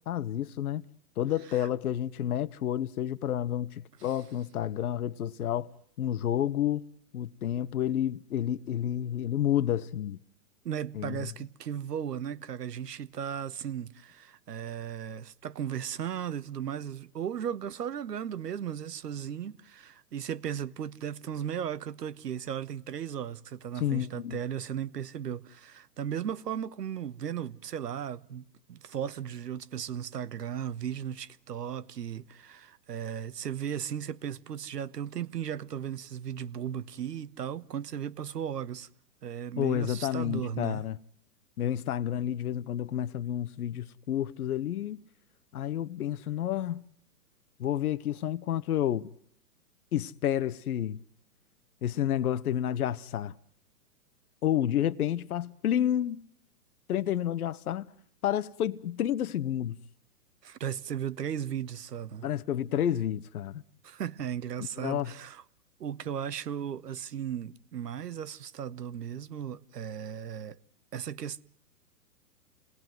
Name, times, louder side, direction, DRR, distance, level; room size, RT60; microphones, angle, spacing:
voice 1, 0.1-0.8 1.2-5.7 6.0-6.8 7.1-10.2 10.9-11.3 23.8-24.4 39.6-41.0 41.6-45.0 45.5-46.8 47.6-49.1 49.9-51.0 51.8-53.3 54.4-56.2 56.9-57.9 58.2-59.8 62.2-63.6 64.8-65.1, left 11 dB, 70° left, 1.1 m, -30 dB
voice 2, 10.6-38.9 39.2-40.9 60.4-62.3 63.8-65.4 65.8-70.6 70.9-71.4, right 9 dB, 85° right, 1.3 m, -36 dB
28.0 x 19.5 x 9.2 m
hypercardioid pair, 140°, 46 cm